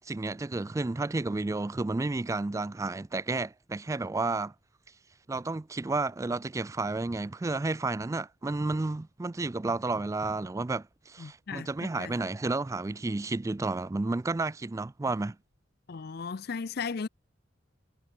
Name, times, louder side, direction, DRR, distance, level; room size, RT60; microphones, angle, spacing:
voice 1, 0.1-4.5 5.3-15.4, right 3 dB, 15° right, 0.3 m, -31 dB
voice 2, 11.2-12.2 15.9-17.1, left 5 dB, 55° left, 0.5 m, -36 dB
head